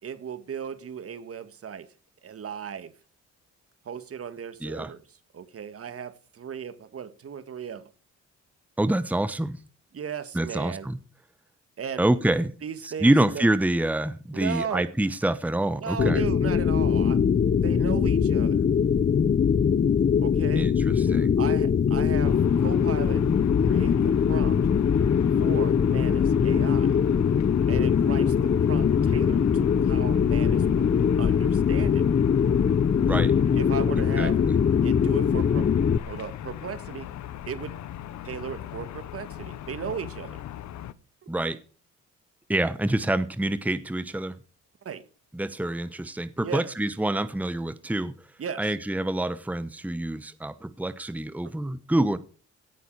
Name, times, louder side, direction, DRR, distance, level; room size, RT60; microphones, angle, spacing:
voice 1, 0.0-1.9 2.2-3.0 3.9-5.0 5.3-7.9 9.9-10.9 11.8-12.0 12.6-13.5 14.3-14.9 15.8-17.2 17.6-18.6 20.2-20.7 21.4-23.3 23.7-24.6 25.4-27.0 27.7-30.9 31.2-32.1 33.5-34.4 34.8-35.7 36.1-37.1 37.5-37.8 38.2-40.4 44.8-45.1 46.4-46.7 48.4-48.7, right 7 dB, 50° right, 1.9 m, -36 dB
voice 2, 4.6-4.9 8.8-9.6 10.3-11.0 12.0-12.5 12.8-16.2 20.6-21.3 33.0-33.4 34.2-34.5 41.3-41.6 42.5-44.4 45.3-48.3 48.6-52.2, right 1 dB, 5° right, 1.1 m, -26 dB
sound 1, 16.0-36.0, left 7 dB, 35° left, 0.8 m, -22 dB
sound 2, 22.2-40.9, left 11 dB, 65° left, 1.0 m, -39 dB
17.0 x 11.0 x 4.8 m
cardioid pair, 90°, 30 cm